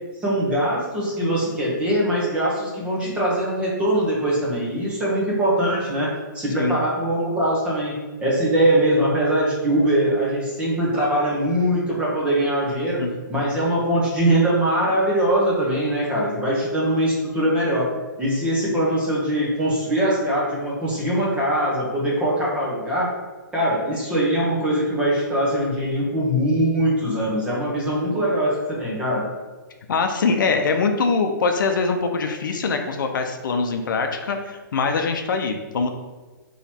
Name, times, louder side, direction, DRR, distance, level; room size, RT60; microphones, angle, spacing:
voice 1, 0.2-13.0 13.3-17.9 18.2-23.1 23.5-29.2, right 1 dB, 10° right, -6 dB, 1.0 m, -22 dB
voice 2, 29.9-35.9, left 4 dB, 70° left, 5 dB, 0.5 m, -23 dB
3.9 x 3.0 x 4.2 m, 1.2 s
hypercardioid pair, 155°, 11 cm